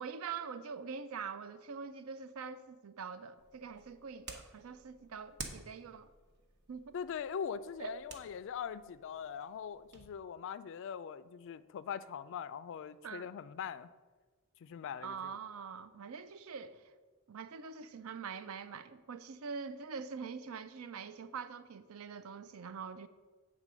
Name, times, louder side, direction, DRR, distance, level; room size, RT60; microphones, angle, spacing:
voice 1, 0.0-6.1 6.7-7.0 7.8-8.0 13.0-13.3 15.0-16.8 17.3-23.1, right 6 dB, 70° right, 0.5 m, -44 dB
sound 1, 3.4-10.1, right 4 dB, 55° right, 0.9 m, -52 dB
voice 2, 6.9-13.9 14.6-15.4, left 7 dB, 60° left, 0.3 m, -42 dB
8.1 x 3.8 x 6.2 m
head